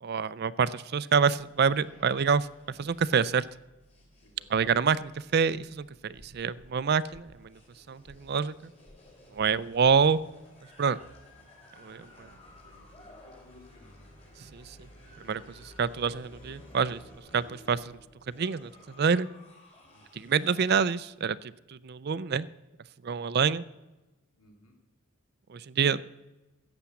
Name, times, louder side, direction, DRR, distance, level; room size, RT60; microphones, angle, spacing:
voice 1, 0.0-2.5 2.8-3.5 4.5-7.5 7.9-8.7 9.3-10.2 10.8-11.0 11.8-12.3 14.5-14.8 15.2-17.0 17.3-18.0 18.4-18.7 19.0-19.3 20.1-22.5 23.0-23.6 25.5-26.1, right 6 dB, 45° right, 18 dB, 0.4 m, -27 dB
sound 1, 1.4-20.9, left 1 dB, 30° left, 3.5 m, -54 dB
voice 2, 4.2-4.7 9.3-9.5 11.9-14.1 19.9-20.2 23.0-23.3 24.4-24.7, left 1 dB, 75° left, 2 dB, 3.1 m, -59 dB
14.5 x 8.8 x 7.0 m, 1.1 s
head